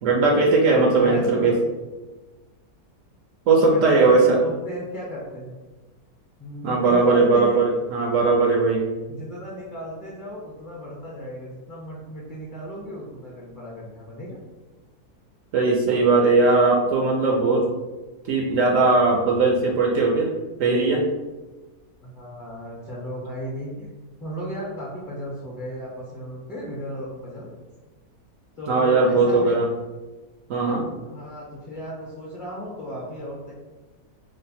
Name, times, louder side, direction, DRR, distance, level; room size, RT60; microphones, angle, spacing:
voice 1, 0.0-1.5 3.5-4.4 6.6-8.8 15.5-17.7 18.3-20.3 20.6-21.0 28.7-29.7 30.5-30.8, right 3 dB, 70° right, -1 dB, 0.8 m, -19 dB
voice 2, 0.9-1.6 3.6-5.6 6.4-7.6 9.1-14.4 22.0-23.9 24.2-27.5 28.6-29.6 31.0-33.5, equal, 40° left, -5 dB, 0.8 m, -35 dB
3.1 x 2.1 x 4.0 m, 1.2 s
omnidirectional pair, 1.6 m